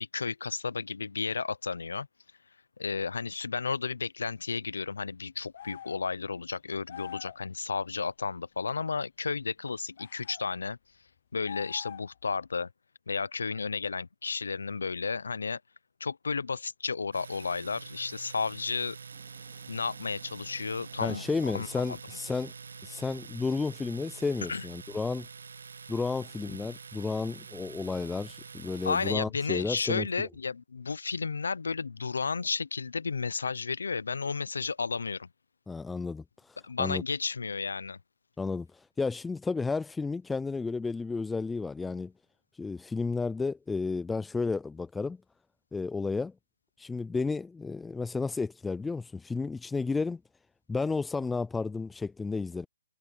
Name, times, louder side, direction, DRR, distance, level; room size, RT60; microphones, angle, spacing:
voice 1, 0.0-2.1 2.8-10.8 11.3-12.7 13.1-15.6 16.0-19.0 19.7-21.2 21.5-22.0 24.5-24.6 28.8-35.3 36.6-38.0, left 5 dB, 80° left, 0.8 m, -33 dB
sound 1, 5.5-6.1 6.9-7.4 10.0-10.4 11.4-12.2, left 10 dB, 50° left, 1.0 m, -44 dB
Domestic sounds home sounds, 17.1-29.2, right 5 dB, 80° right, 1.4 m, -46 dB
sound 2, 19.1-25.5, right 23 dB, 25° right, 4.0 m, -64 dB
voice 2, 21.0-22.5 22.8-25.3 25.9-30.1 35.7-37.0 38.4-42.1 42.5-45.2 45.7-46.3 46.8-50.2 50.7-52.7, left 4 dB, 5° left, 0.5 m, -32 dB
hypercardioid pair, 150°, 0 cm